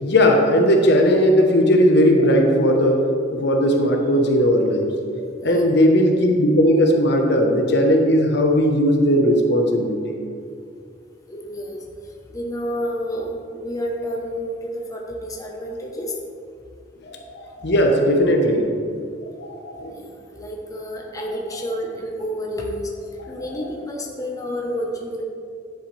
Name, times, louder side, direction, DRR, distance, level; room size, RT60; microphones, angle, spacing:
voice 1, 0.0-3.0 3.3-4.9 5.4-10.1 17.0-18.7 19.4-19.9 23.4-23.7, equal, 65° left, 2 dB, 1.1 m, -17 dB
voice 2, 11.3-11.8 12.3-16.1 19.9-22.9 23.3-25.2, equal, 20° left, -1 dB, 1.0 m, -29 dB
10.5 x 7.9 x 3.3 m, 2.3 s
head